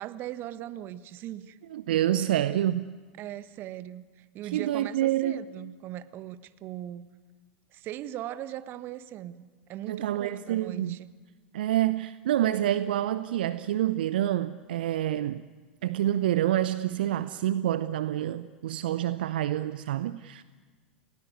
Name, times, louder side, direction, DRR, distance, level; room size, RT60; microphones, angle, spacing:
voice 1, 0.0-1.6 3.2-7.1 7.7-11.1, right 12 dB, 40° right, 1.3 m, -39 dB
voice 2, 1.7-3.0 4.5-5.4 9.9-11.0 11.5-15.4 15.8-20.4, right 12 dB, 65° right, 0.7 m, -27 dB
29.5 x 17.5 x 9.7 m
figure-of-eight pair, 85°, 6 cm